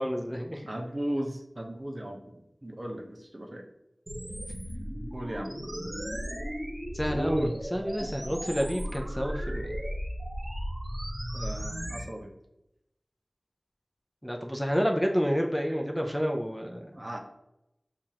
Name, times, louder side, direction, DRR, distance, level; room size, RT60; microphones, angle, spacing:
voice 1, 0.0-0.7 6.9-9.8 14.2-17.0, equal, 5° left, 1 dB, 0.5 m, -29 dB
voice 2, 0.7-3.6 5.1-5.5 7.1-7.5 8.0-8.1 11.3-12.3 16.9-17.2, right 1 dB, 40° right, 2 dB, 0.7 m, -36 dB
sound 1, 4.1-12.0, equal, 55° right, 1.1 m, -35 dB
7.1 x 2.4 x 2.8 m, 0.85 s
wide cardioid pair, 45°, 0 cm